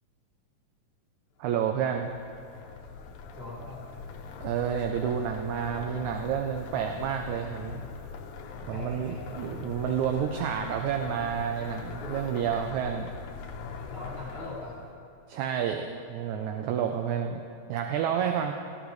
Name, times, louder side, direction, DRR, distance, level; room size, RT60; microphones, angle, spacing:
voice 1, 1.4-2.1 4.4-7.8 8.7-13.1 15.3-17.4 17.7-18.5, right 8 dB, 75° right, 4 dB, 1.9 m, -30 dB
sound 1, 1.5-15.0, left 5 dB, 70° left, 2.2 m, -41 dB
voice 2, 3.3-3.8 8.7-9.4 13.9-14.8, left 2 dB, 20° right, -8 dB, 4.4 m, -41 dB
20.0 x 14.0 x 3.2 m, 2.6 s
omnidirectional pair, 3.7 m